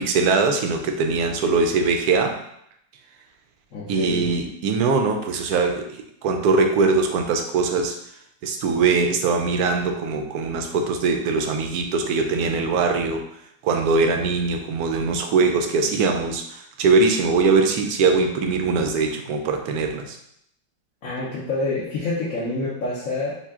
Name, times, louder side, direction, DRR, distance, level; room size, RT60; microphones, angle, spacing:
voice 1, 0.0-2.4 3.9-8.0 8.4-13.2 13.6-20.2, right 4 dB, 70° right, 4 dB, 0.9 m, -21 dB
voice 2, 3.7-4.3 21.0-23.3, left 2 dB, 55° left, -8 dB, 1.1 m, -27 dB
5.6 x 2.4 x 3.6 m, 0.75 s
omnidirectional pair, 2.0 m